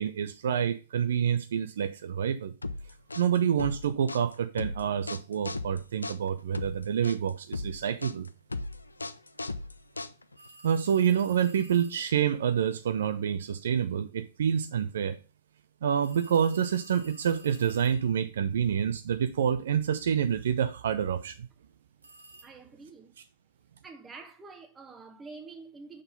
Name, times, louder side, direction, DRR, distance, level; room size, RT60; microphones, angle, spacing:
voice 1, 0.0-2.5 3.2-8.3 10.6-15.2 15.8-21.5, right 8 dB, 65° right, 0.5 m, -27 dB
sound 1, 2.6-10.5, left 2 dB, 85° left, 0.4 m, -37 dB
sound 2, 10.4-12.1 16.0-18.3 22.0-22.4, right 2 dB, 85° right, 1.6 m, -53 dB
voice 2, 22.4-23.2 23.8-26.0, right 4 dB, 15° right, 1.2 m, -47 dB
6.1 x 3.9 x 5.2 m
figure-of-eight pair, 105°, 0 cm